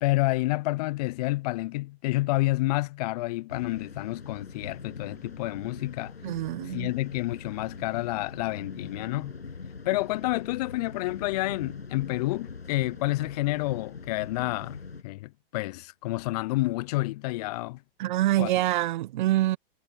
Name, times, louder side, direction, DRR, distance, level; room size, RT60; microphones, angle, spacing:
voice 1, 0.0-6.2 6.7-9.4 9.9-17.8 18.4-18.5, left 20 dB, 40° left, 0.5 m, -29 dB
sound 1, 3.5-15.0, left 4 dB, 85° left, 6.8 m, -43 dB
voice 2, 6.2-6.9 18.0-19.6, right 15 dB, 50° right, 1.2 m, -25 dB
hypercardioid pair, 115°, 30 cm